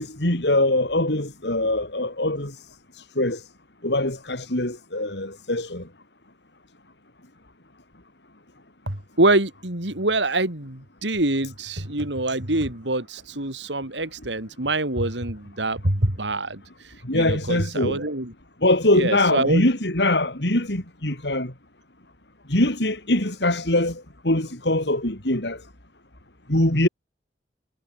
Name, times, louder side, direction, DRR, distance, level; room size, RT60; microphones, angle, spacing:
voice 1, 0.0-2.6 3.0-3.4 3.8-5.8 17.0-18.0 18.6-21.5 22.5-25.6 26.5-26.9, left 1 dB, 75° left, 4.3 m, -23 dB
voice 2, 8.9-18.3 18.9-19.6, right 2 dB, 90° right, 4.3 m, -25 dB
head